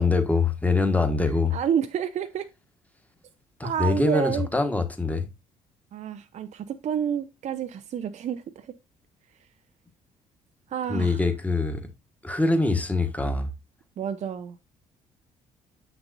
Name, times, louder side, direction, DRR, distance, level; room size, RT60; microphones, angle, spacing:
voice 1, 0.0-1.6 3.6-5.3 10.9-11.9 12.2-13.5, left 3 dB, 10° left, 1.4 m, -24 dB
voice 2, 1.5-2.5 3.6-4.5 5.9-8.7 10.7-11.2 14.0-14.6, right 8 dB, 40° right, 0.5 m, -29 dB
7.2 x 6.1 x 2.6 m
figure-of-eight pair, 45°, 18 cm